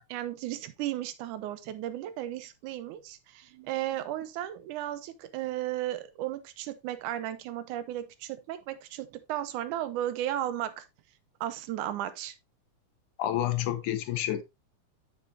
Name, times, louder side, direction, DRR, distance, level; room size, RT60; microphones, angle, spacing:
voice 1, 0.0-10.9 11.4-12.4, right 13 dB, 80° right, 2.3 m, -35 dB
voice 2, 13.2-14.4, left 12 dB, 80° left, 2.4 m, -29 dB
8.5 x 7.3 x 2.6 m
omnidirectional pair, 3.5 m